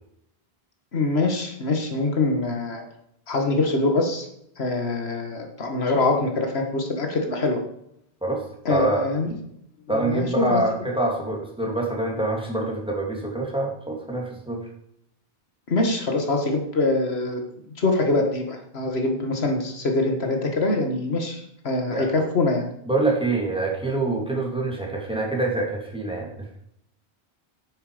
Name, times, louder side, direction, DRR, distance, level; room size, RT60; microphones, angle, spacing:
voice 1, 0.9-2.8 3.3-4.3 4.6-7.6 8.7-9.3 9.9-10.6 15.7-17.4 17.8-22.7, left 2 dB, 85° left, 3 dB, 1.9 m, -24 dB
voice 2, 8.7-9.0 9.9-14.6 21.9-22.1 22.9-26.3, right 2 dB, 5° right, -2 dB, 2.9 m, -25 dB
9.8 x 9.4 x 5.1 m, 0.74 s
omnidirectional pair, 1.0 m